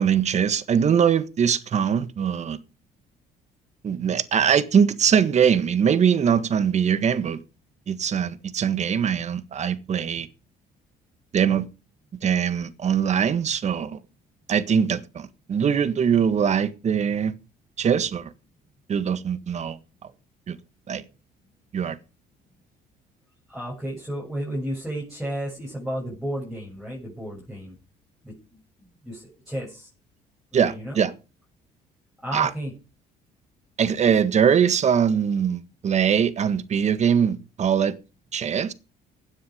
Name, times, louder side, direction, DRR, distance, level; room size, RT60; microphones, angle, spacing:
voice 1, 0.0-2.6 3.8-7.4 7.9-10.3 11.3-11.7 12.2-14.0 14.5-17.4 17.8-18.3 18.9-19.8 20.5-20.6 20.9-21.0 21.7-22.0 30.5-31.1 32.3-32.5 33.8-37.9 38.3-38.7, right 7 dB, 45° right, 1.6 m, -22 dB
voice 2, 23.5-27.8 28.2-28.3 28.8-29.9 30.5-31.0 32.2-32.7, equal, ahead, 7.2 m, -33 dB
16.5 x 9.6 x 5.2 m
cardioid pair, 110°, 17 cm